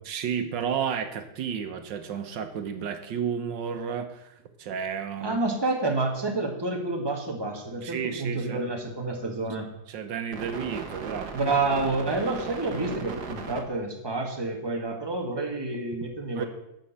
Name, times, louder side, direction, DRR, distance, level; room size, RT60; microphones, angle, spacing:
voice 1, 0.0-5.4 7.8-8.6 9.9-11.3 16.3-16.5, right 7 dB, 85° right, 8 dB, 1.7 m, -32 dB
voice 2, 5.2-9.7 11.3-16.5, right 2 dB, 15° right, 2 dB, 1.7 m, -29 dB
sound 1, 7.5-8.0 9.1-9.2 10.3-13.6, right 6 dB, 65° right, 1.7 m, -37 dB
12.0 x 5.2 x 8.7 m, 0.84 s
omnidirectional pair, 1.9 m